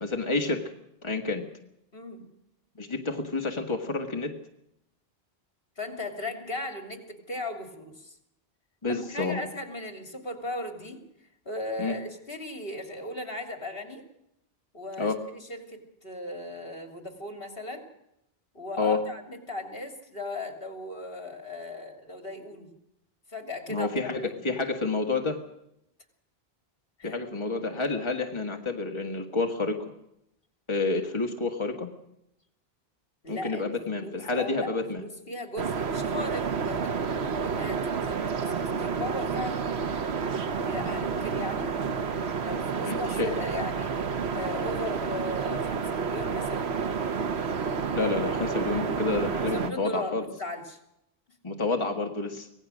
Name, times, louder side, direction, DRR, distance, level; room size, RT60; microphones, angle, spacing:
voice 1, 0.0-0.6 1.0-1.5 2.8-4.3 8.8-9.5 11.8-11.9 15.0-15.2 18.8-19.0 23.7-25.4 27.0-29.9 30.7-31.9 33.3-35.0 40.8-41.1 42.8-43.3 47.9-50.2 51.4-52.5, left 3 dB, 25° left, 3 dB, 1.9 m, -29 dB
voice 2, 1.9-2.2 5.8-8.2 8.9-11.0 11.4-14.0 14.7-17.9 18.5-22.7 23.3-24.4 27.0-27.2 33.2-36.9 37.4-39.6 40.5-41.7 42.4-43.9 44.3-46.7 49.4-50.8, left 2 dB, 65° left, 5 dB, 3.2 m, -37 dB
sound 1, 35.6-49.7, right 5 dB, 90° right, 1.3 m, -30 dB
25.5 x 18.0 x 6.4 m, 0.81 s
omnidirectional pair, 1.0 m